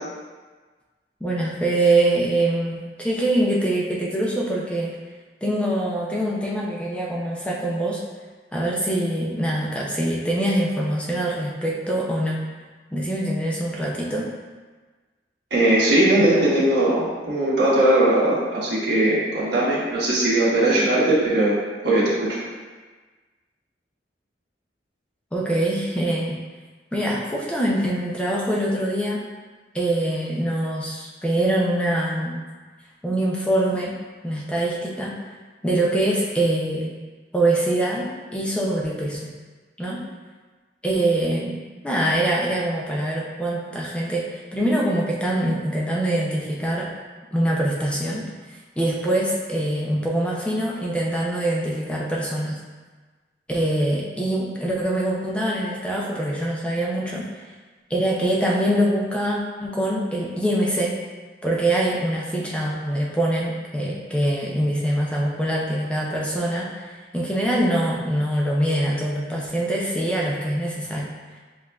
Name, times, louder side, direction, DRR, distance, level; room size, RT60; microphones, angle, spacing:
voice 1, 1.2-5.0 5.4-8.0 8.5-12.4 12.9-14.3 25.3-26.4 26.9-29.2 29.7-32.4 33.0-34.0 34.2-35.1 35.6-36.9 37.3-39.3 39.8-40.0 40.8-41.6 41.8-46.9 47.3-52.6 53.5-57.4 57.9-61.0 61.4-71.1, right 1 dB, 5° left, -4 dB, 0.4 m, -24 dB
voice 2, 15.5-21.6 21.8-22.4, right 1 dB, 70° right, -7 dB, 1.3 m, -19 dB
7.4 x 2.5 x 2.3 m, 1.4 s
head